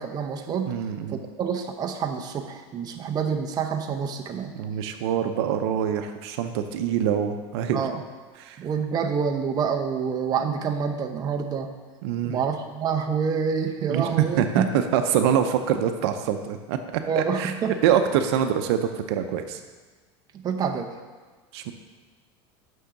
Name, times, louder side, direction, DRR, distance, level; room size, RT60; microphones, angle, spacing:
voice 1, 0.0-0.8 1.1-4.5 7.7-8.0 8.6-11.7 12.2-14.7 17.1-17.8 20.3-20.9, right 6 dB, 30° right, 4 dB, 0.7 m, -27 dB
voice 2, 0.7-1.2 4.5-7.9 8.4-8.6 12.0-12.4 13.9-14.7 14.9-16.8 17.2-17.5 17.8-19.6 21.5-21.7, right 9 dB, 70° right, 7 dB, 0.7 m, -25 dB
6.4 x 6.3 x 5.9 m, 1.4 s
supercardioid pair, 135°, 14 cm